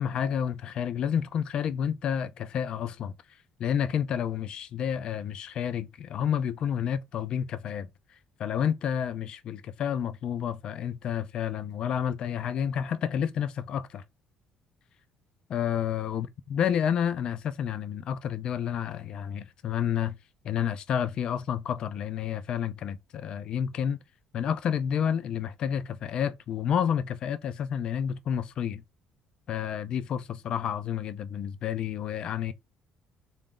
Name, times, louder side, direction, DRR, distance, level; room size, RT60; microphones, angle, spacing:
voice 1, 0.0-3.1 3.6-7.9 8.4-14.0 15.5-20.2 20.4-24.0 24.3-28.8 29.5-32.5, left 8 dB, 45° left, 0.4 m, -30 dB
3.9 x 2.5 x 3.7 m
cardioid pair, 155°, 2 cm